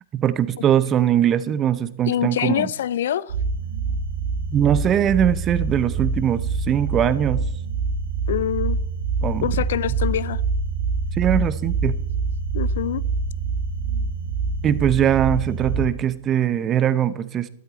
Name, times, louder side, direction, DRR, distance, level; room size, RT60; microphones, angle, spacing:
voice 1, 0.1-2.7 4.5-7.5 9.2-9.5 11.1-12.0 14.6-17.5, right 10 dB, 30° right, 0.7 m, -21 dB
voice 2, 2.0-3.3 8.3-8.8 9.4-10.4 12.5-13.0, left 10 dB, 70° left, 0.4 m, -25 dB
sound 1, 3.3-15.9, right 4 dB, 80° right, 1.3 m, -25 dB
13.0 x 12.5 x 4.1 m
hypercardioid pair, 110°, 0 cm